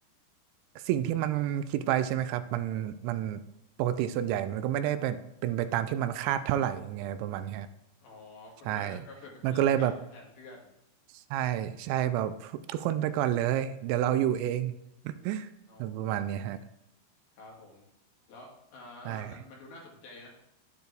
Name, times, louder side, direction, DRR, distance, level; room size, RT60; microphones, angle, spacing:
voice 1, 0.8-3.4 3.8-7.7 8.7-9.0 9.4-9.9 11.3-14.7 15.1-15.5 15.8-16.6 19.1-19.4, right 11 dB, 85° right, 12 dB, 2.8 m, -29 dB
voice 2, 8.0-10.8 15.7-16.6 17.4-17.9 18.3-20.3, left 2 dB, 60° left, -2 dB, 3.6 m, -49 dB
10.5 x 9.1 x 3.3 m, 0.84 s
omnidirectional pair, 5.3 m